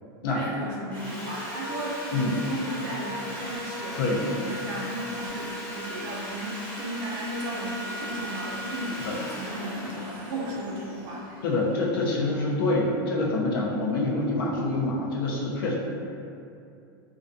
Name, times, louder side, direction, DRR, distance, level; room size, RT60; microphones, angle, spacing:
voice 1, 0.3-11.3, right 1 dB, 40° right, -5 dB, 0.5 m, -35 dB
Sawing, 0.9-12.0, equal, 10° left, 0.6 m, -37 dB
voice 2, 2.1-2.5 4.0-4.2 9.0-9.2 11.4-15.7, left 2 dB, 75° left, -3 dB, 0.5 m, -26 dB
2.3 x 2.3 x 2.5 m, 2.5 s
supercardioid pair, 165°, 12 cm